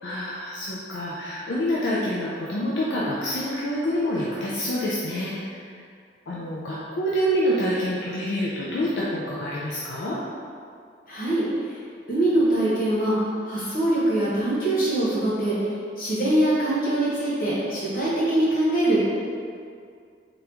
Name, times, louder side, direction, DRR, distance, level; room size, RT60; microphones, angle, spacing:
voice 1, 0.0-5.7 6.3-10.2, equal, 70° left, -6 dB, 0.5 m, -27 dB
voice 2, 11.1-11.8 12.1-13.1 13.4-15.6 16.0-19.0, right 1 dB, 50° left, -8 dB, 1.2 m, -23 dB
3.7 x 2.9 x 3.4 m, 2.3 s
head